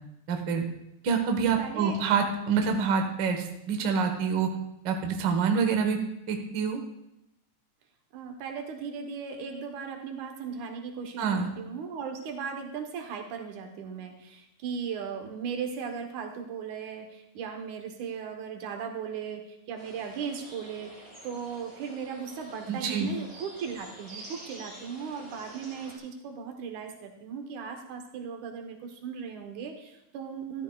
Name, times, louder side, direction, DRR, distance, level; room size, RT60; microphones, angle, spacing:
voice 1, 0.3-0.6 1.0-4.5 4.8-6.0 6.3-6.8 11.2-11.5 22.7-23.1, right 6 dB, 50° right, 4 dB, 1.4 m, -26 dB
voice 2, 1.6-2.0 8.1-20.9 21.2-30.6, right 6 dB, 85° right, 4 dB, 2.6 m, -37 dB
sound 1, 19.8-26.0, right 1 dB, 15° right, 3.8 m, -48 dB
13.5 x 12.5 x 2.3 m, 0.86 s
omnidirectional pair, 3.3 m